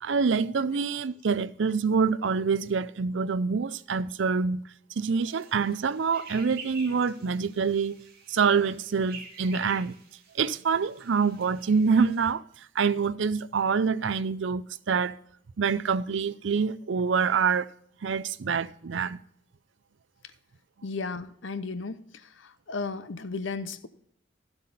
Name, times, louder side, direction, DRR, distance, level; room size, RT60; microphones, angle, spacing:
voice 1, 0.0-4.6 5.0-8.0 8.3-9.9 10.3-12.4 12.8-15.2 15.6-17.7 18.0-19.2, right 5 dB, 70° right, 0.5 m, -26 dB
sound 1, 5.2-12.3, right 5 dB, 50° right, 2.2 m, -48 dB
voice 2, 20.8-23.9, left 4 dB, 70° left, 0.7 m, -35 dB
12.5 x 7.9 x 4.1 m
head